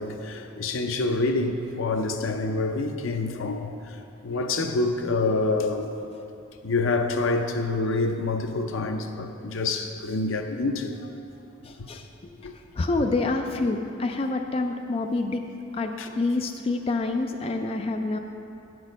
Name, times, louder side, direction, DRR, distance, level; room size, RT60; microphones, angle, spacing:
voice 1, 0.0-6.0 6.6-11.1 12.4-12.5 16.0-16.1, left 3 dB, 85° left, 6 dB, 0.6 m, -27 dB
voice 2, 11.6-12.1 12.8-15.4 15.7-18.2, left 3 dB, 30° left, 4 dB, 0.3 m, -27 dB
8.9 x 6.2 x 5.2 m, 2.7 s
head